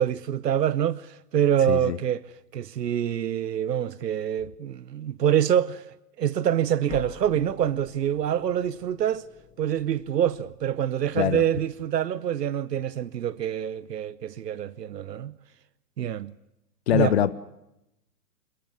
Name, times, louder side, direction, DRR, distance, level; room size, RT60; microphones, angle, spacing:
voice 1, 0.0-2.2 2.5-9.2 9.6-15.3 16.0-16.3 16.9-17.2, right 10 dB, 85° right, 0.9 m, -26 dB
sound 1, 6.9-11.6, left 9 dB, 15° left, 1.5 m, -47 dB
voice 2, 16.9-17.3, left 11 dB, 45° left, 0.8 m, -23 dB
28.0 x 14.5 x 9.6 m
hypercardioid pair, 150°, 48 cm